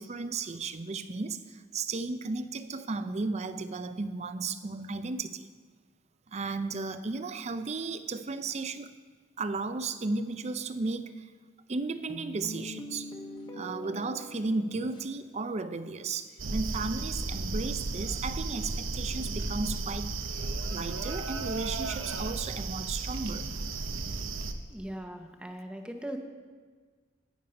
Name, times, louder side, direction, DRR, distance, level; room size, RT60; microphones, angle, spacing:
voice 1, 0.0-5.5 6.3-8.9 9.4-11.3 11.7-13.1 13.5-20.1 20.7-23.5, right 3 dB, 35° right, 12 dB, 0.5 m, -34 dB
sound 1, 12.1-15.7 16.1-16.2 16.8-16.9 17.6-18.0, equal, 25° left, 1.1 m, -44 dB
sound 2, 16.4-24.5, right 3 dB, 80° right, 0.8 m, -34 dB
voice 2, 24.7-26.2, right 1 dB, 5° right, 4 dB, 0.9 m, -39 dB
11.0 x 9.3 x 5.2 m, 1.5 s
head